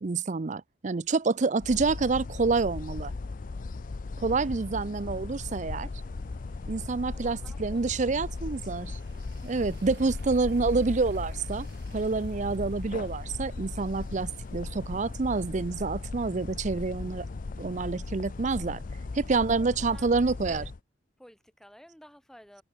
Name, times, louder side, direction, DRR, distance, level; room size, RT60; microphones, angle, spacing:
voice 1, 0.0-3.1 4.2-5.9 6.7-9.0 9.4-11.7 11.9-17.3 17.6-18.8 19.1-20.6, right 4 dB, 40° right, 0.5 m, -28 dB
sound 1, 1.0-16.9, right 4 dB, 60° right, 4.3 m, -61 dB
sound 2, 1.6-20.8, left 3 dB, 45° left, 0.5 m, -37 dB
voice 2, 4.2-4.5 7.0-8.2 8.4-8.9 18.8-20.7 21.2-22.6, equal, 5° left, 3.6 m, -55 dB
sound 3, 12.4-19.1, left 1 dB, 70° left, 4.9 m, -62 dB
head